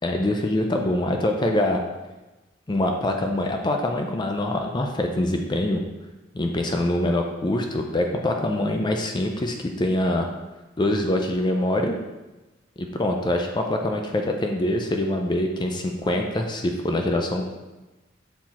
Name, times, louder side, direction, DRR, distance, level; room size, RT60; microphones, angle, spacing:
voice 1, 0.0-1.8 2.7-5.8 6.3-10.3 10.8-12.0 12.8-17.6, left 1 dB, 20° left, 3 dB, 0.4 m, -24 dB
5.7 x 4.8 x 4.2 m, 1.1 s
head